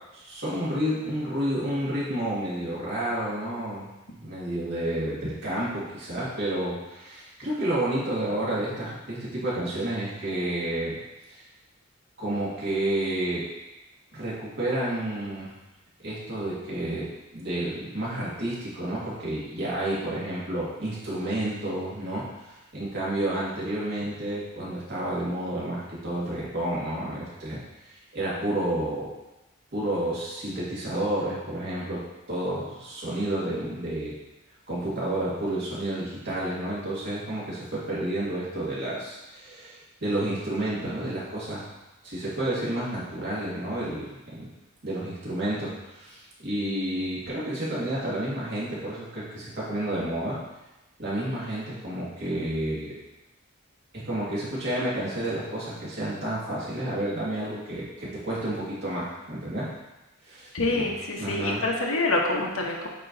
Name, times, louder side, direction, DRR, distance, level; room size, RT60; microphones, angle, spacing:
voice 1, 0.1-11.0 11.3-11.4 12.2-13.5 14.1-15.5 16.0-29.1 29.7-32.0 32.3-34.2 34.7-41.6 42.0-44.5 44.8-50.4 51.0-52.9 53.9-59.7 60.3-60.9 61.2-61.6, right 1 dB, 50° right, -8 dB, 2.1 m, -30 dB
voice 2, 60.5-62.9, left 2 dB, 80° left, 0 dB, 1.0 m, -26 dB
8.3 x 3.0 x 3.9 m, 1.0 s
head